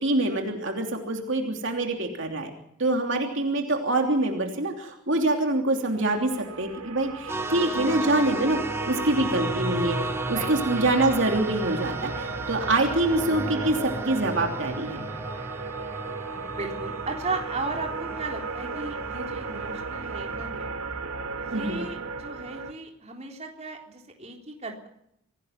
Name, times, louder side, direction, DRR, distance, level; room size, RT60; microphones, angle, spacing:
voice 1, 0.0-2.5 2.8-6.3 6.6-8.6 8.9-15.0 21.5-21.8, right 2 dB, 55° right, 3 dB, 3.1 m, -25 dB
sound 1, 5.9-22.7, right 4 dB, 80° right, 2.3 m, -35 dB
sound 2, 7.3-20.5, right 1 dB, 10° right, 1.5 m, -34 dB
voice 2, 10.2-11.1 16.3-20.7 21.4-24.9, right 3 dB, 30° right, 1 dB, 3.7 m, -36 dB
26.0 x 17.5 x 5.9 m, 0.77 s
head